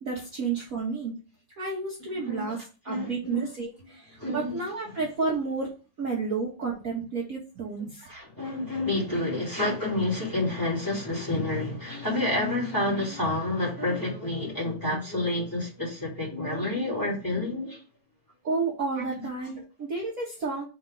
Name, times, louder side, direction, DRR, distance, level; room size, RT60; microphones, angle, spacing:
voice 1, 0.0-1.1 1.6-8.1 18.4-20.6, right 4 dB, 45° right, 1.5 m, -31 dB
voice 2, 2.1-2.5 2.9-3.4 4.2-4.6 8.0-17.8 19.0-19.1, left 2 dB, 10° left, 2.5 m, -29 dB
4.4 x 4.3 x 5.1 m
omnidirectional pair, 2.2 m